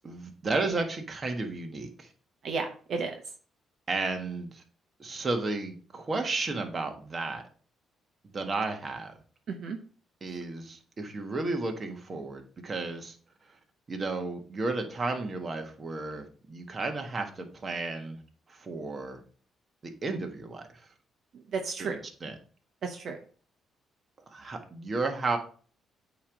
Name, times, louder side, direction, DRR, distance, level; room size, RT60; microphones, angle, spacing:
voice 1, 0.0-2.1 3.9-4.6 5.0-7.4 8.3-9.1 10.2-13.2 13.9-18.2 18.5-19.2 19.8-20.9 21.8-22.3 24.3-25.4, right 3 dB, 35° right, 4 dB, 1.4 m, -33 dB
voice 2, 2.4-3.1 9.5-9.8 21.3-22.0 22.8-23.2, right 4 dB, 60° right, 4 dB, 0.9 m, -33 dB
8.3 x 3.1 x 5.2 m, 0.42 s
cardioid pair, 90°, 0 cm